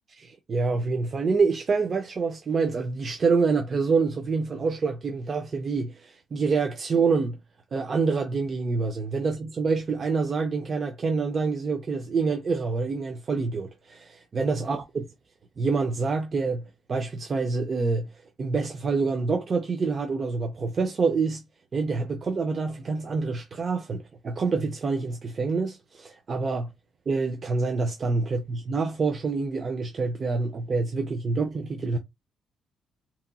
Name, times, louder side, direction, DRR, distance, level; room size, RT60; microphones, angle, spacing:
voice 1, 0.2-7.4 7.7-15.0 15.6-16.6 16.9-18.1 18.4-21.4 21.7-26.7 27.1-32.0, right 4 dB, 45° right, 0.5 m, -26 dB
2.9 x 2.5 x 2.2 m
cardioid pair, 90°, 0 cm